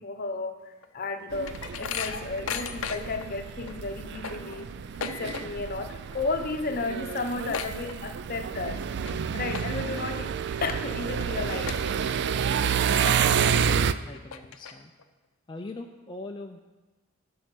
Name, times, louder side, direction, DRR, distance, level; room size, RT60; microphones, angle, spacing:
voice 1, 0.0-4.7 5.0-8.8 9.3-10.3 10.6-11.8 13.0-13.2, left 3 dB, 45° left, 6 dB, 0.8 m, -33 dB
sound 1, 0.8-3.3 3.7-3.8 4.0-5.8 6.0-6.4 6.7-6.8 7.0-8.4 8.9-9.1 9.5-10.0 10.5-10.6 11.2-11.3 11.7-12.4 12.8-12.9 13.6-13.7 14.1-15.0, left 7 dB, 85° left, 0.6 m, -36 dB
sound 2, 1.3-13.9, right 7 dB, 55° right, 0.4 m, -29 dB
voice 2, 14.0-14.9 15.5-16.6, left 2 dB, 25° left, 2 dB, 0.5 m, -41 dB
10.5 x 5.7 x 6.1 m, 1.2 s
head